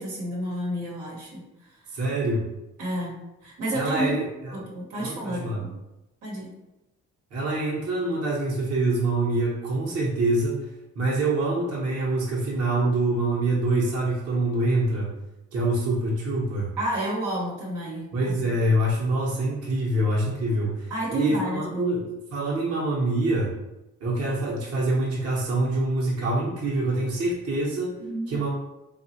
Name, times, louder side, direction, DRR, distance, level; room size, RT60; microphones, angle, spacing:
voice 1, 0.0-1.5 2.8-5.7 6.2-6.5 16.8-18.5 20.9-22.0 28.0-28.4, right 1 dB, 85° right, -4 dB, 1.0 m, -31 dB
voice 2, 1.9-2.4 3.7-4.6 5.0-5.6 7.3-10.6 10.9-15.1 15.5-16.7 18.1-22.1 22.3-23.5 24.0-27.9 28.3-28.5, right 2 dB, 55° right, -4 dB, 0.9 m, -25 dB
3.0 x 2.3 x 2.8 m, 0.95 s
cardioid pair, 90°, 30 cm